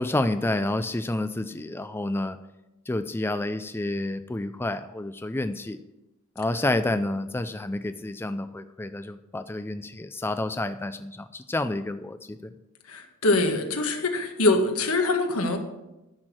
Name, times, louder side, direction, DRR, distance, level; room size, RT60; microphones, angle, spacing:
voice 1, 0.0-2.4 2.9-5.8 6.4-12.5, left 2 dB, 10° left, 10 dB, 0.4 m, -29 dB
voice 2, 12.9-15.6, left 2 dB, 85° left, 4 dB, 1.8 m, -24 dB
10.5 x 6.4 x 7.5 m, 0.97 s
head